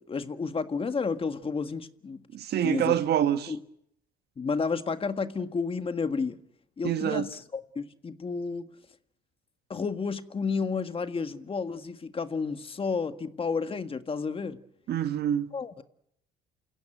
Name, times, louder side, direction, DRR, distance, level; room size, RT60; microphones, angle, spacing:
voice 1, 0.0-2.3 2.6-3.0 3.5-3.6 4.4-6.4 6.8-8.6 9.7-14.6 15.5-15.8, left 5 dB, 30° left, 1.7 m, -31 dB
voice 2, 2.3-3.5 6.8-7.2 14.9-15.5, right 10 dB, 55° right, 1.5 m, -26 dB
28.5 x 16.5 x 9.1 m
supercardioid pair, 90°, 20 cm